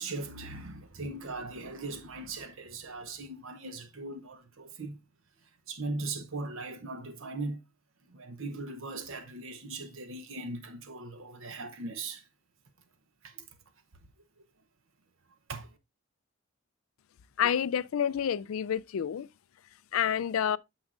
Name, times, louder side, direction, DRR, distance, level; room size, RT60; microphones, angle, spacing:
voice 1, 0.0-5.0 5.7-7.6 8.1-12.2 13.2-13.4 15.5-15.8, right 3 dB, 65° right, 0.8 m, -39 dB
voice 2, 17.4-19.3 19.9-20.6, left 8 dB, 75° left, 0.4 m, -28 dB
9.4 x 6.3 x 2.5 m
head